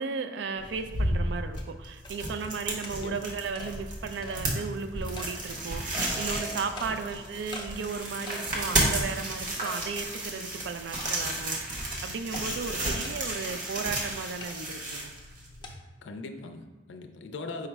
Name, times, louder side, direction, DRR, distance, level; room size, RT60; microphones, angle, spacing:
voice 1, 0.0-15.1, right 5 dB, 70° right, 8 dB, 0.3 m, -35 dB
sound 1, 0.6-15.7, right 1 dB, 50° right, 0.8 m, -33 dB
sound 2, 0.9-1.0 1.6-1.7 2.1-2.2 2.8-3.0 3.6-3.7 4.2-4.4 5.2-5.3 6.0-6.2 6.8-6.9 7.5-7.7 8.3-8.5 8.9-9.0 9.6-9.8 10.3-10.4 11.0-11.4 12.3-12.4 13.0-13.2 14.4-14.6 15.6-15.7, left 2 dB, 25° left, 0.5 m, -42 dB
sound 3, 5.9-10.7, right 1 dB, 20° right, 0.8 m, -47 dB
voice 2, 16.0-17.7, left 3 dB, 90° left, 6 dB, 0.4 m, -40 dB
4.8 x 2.1 x 4.5 m, 1.2 s
head